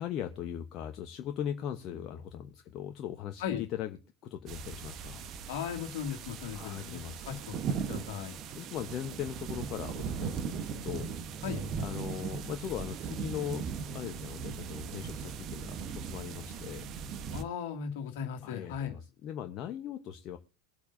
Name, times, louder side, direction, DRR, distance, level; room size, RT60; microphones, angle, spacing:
voice 1, 0.0-4.0 4.2-5.2 6.5-7.3 8.5-11.1 11.8-13.7 13.9-16.9 18.4-20.4, left 10 dB, 40° left, 6 dB, 1.0 m, -39 dB
sound 1, 4.5-17.4, right 6 dB, 40° right, 1.1 m, -38 dB
voice 2, 5.5-7.6 7.9-8.4 11.4-11.6 17.3-19.0, left 8 dB, 60° left, 4 dB, 2.3 m, -37 dB
23.0 x 8.3 x 2.7 m, 0.33 s
figure-of-eight pair, 85°, 0 cm